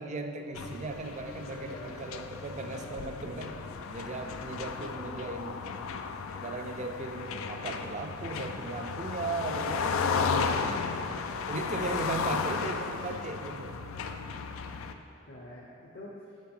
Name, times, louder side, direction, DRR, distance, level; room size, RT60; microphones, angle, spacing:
voice 1, 0.0-3.5 3.9-5.7 6.4-9.9 11.0-11.1 11.5-13.7, right 3 dB, 35° right, 6 dB, 0.5 m, -37 dB
sound 1, 0.5-14.9, left 5 dB, 70° left, 0.4 m, -34 dB
voice 2, 1.2-2.2 2.7-3.8 10.2-11.1 13.1-13.2 15.3-16.4, left 1 dB, 55° left, -5 dB, 0.9 m, -47 dB
7.4 x 7.3 x 3.8 m, 2.7 s
head